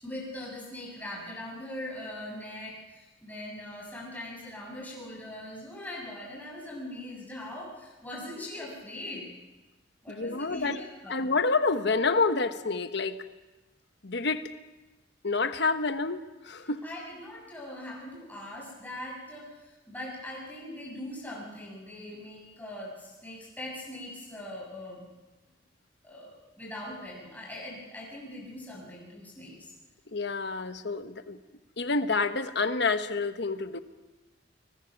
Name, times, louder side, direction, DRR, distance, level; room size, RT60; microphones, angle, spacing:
voice 1, 0.0-9.2 10.0-11.2 16.6-25.1 26.0-29.7, left 1 dB, 10° left, -3 dB, 6.6 m, -41 dB
voice 2, 10.1-10.8 11.1-13.2 14.0-14.4 15.2-16.8 30.1-31.4 31.8-33.8, left 4 dB, 65° left, 9 dB, 1.2 m, -28 dB
29.5 x 20.5 x 6.0 m, 1.1 s
head